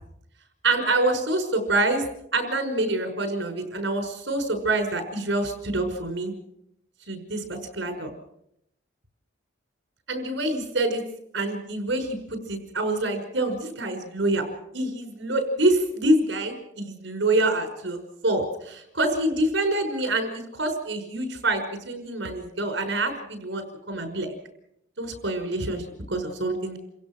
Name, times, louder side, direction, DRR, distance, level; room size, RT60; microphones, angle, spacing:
voice 1, 0.6-2.0 2.3-6.3 7.1-8.1 10.1-11.0 11.3-12.2 12.5-14.5 14.7-24.3 25.0-26.8, right 2 dB, 65° right, 6 dB, 5.5 m, -26 dB
29.0 x 16.5 x 6.2 m, 0.76 s
head